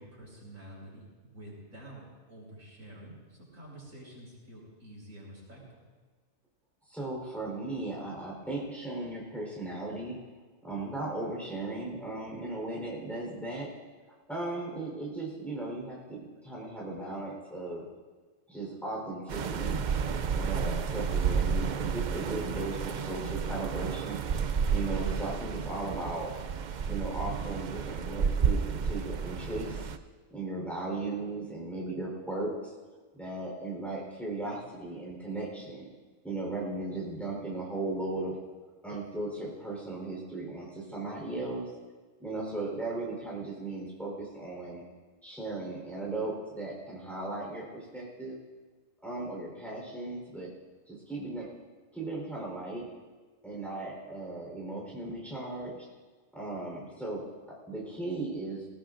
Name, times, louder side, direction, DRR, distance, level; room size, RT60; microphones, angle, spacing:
voice 1, 0.0-5.8, right 1 dB, 80° right, -5 dB, 5.8 m, -49 dB
voice 2, 6.9-10.2 10.6-13.7 14.3-17.8 18.5-19.8 20.3-24.2 24.7-26.3 26.9-29.9 30.3-32.5 33.1-35.9 36.2-38.4 38.8-41.7 42.2-44.8 45.2-48.4 49.0-50.5 50.9-51.5 51.9-52.8 53.4-55.7 56.3-58.7, right 2 dB, ahead, -4 dB, 4.1 m, -37 dB
sound 1, 19.3-30.0, right 6 dB, 60° right, 0.4 m, -31 dB
19.5 x 18.0 x 2.6 m, 1.3 s
omnidirectional pair, 1.4 m